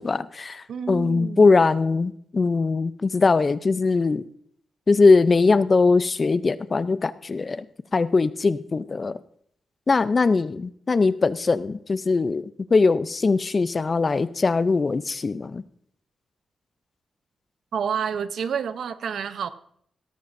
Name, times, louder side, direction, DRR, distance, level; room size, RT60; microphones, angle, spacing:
voice 1, 0.0-4.2 4.9-7.7 7.9-9.2 9.9-15.6, left 4 dB, 35° left, 15 dB, 0.5 m, -21 dB
voice 2, 0.7-1.5 17.7-19.5, right 7 dB, 75° right, 12 dB, 0.7 m, -29 dB
17.5 x 13.5 x 2.6 m, 0.66 s
wide cardioid pair, 115°, 0 cm